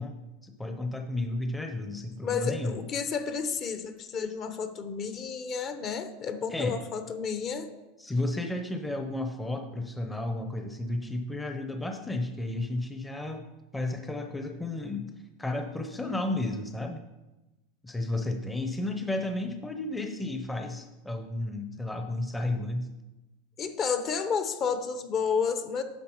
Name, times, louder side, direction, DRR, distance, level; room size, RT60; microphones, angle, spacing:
voice 1, 0.0-2.8 6.5-6.8 8.0-13.5 13.7-17.0 17.8-22.9, left 2 dB, 10° left, 5 dB, 0.7 m, -33 dB
voice 2, 2.2-7.7 23.6-25.8, left 6 dB, 35° left, 9 dB, 0.9 m, -31 dB
9.5 x 6.3 x 4.5 m, 1.1 s
supercardioid pair, 130°, 0 cm